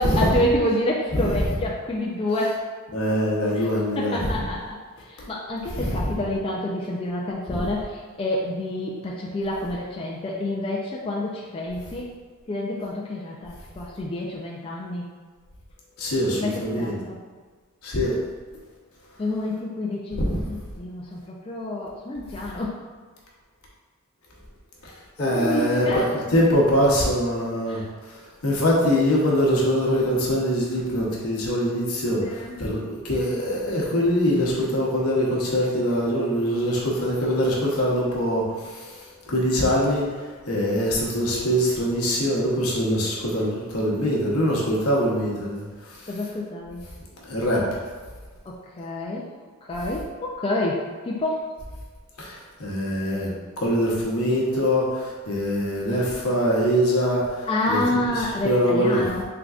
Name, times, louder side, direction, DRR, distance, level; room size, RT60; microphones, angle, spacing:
voice 1, 0.0-2.6 3.5-3.7 4.0-4.8 5.1-12.1 12.5-15.1 16.4-17.2 19.2-22.7 25.2-26.0 27.7-27.8 32.2-32.5 46.1-46.8 48.5-49.3 49.7-51.4 57.5-59.2, left 1 dB, 25° left, -4 dB, 0.3 m, -28 dB
voice 2, 2.9-4.3 5.7-6.0 7.5-7.6 16.0-17.0 17.8-18.2 20.2-20.4 25.2-27.8 28.4-40.1 40.5-45.6 45.9-46.1 47.2-47.6 52.2-53.3 53.6-59.1, equal, 70° left, -4 dB, 0.9 m, -23 dB
3.8 x 3.4 x 2.3 m, 1.4 s
head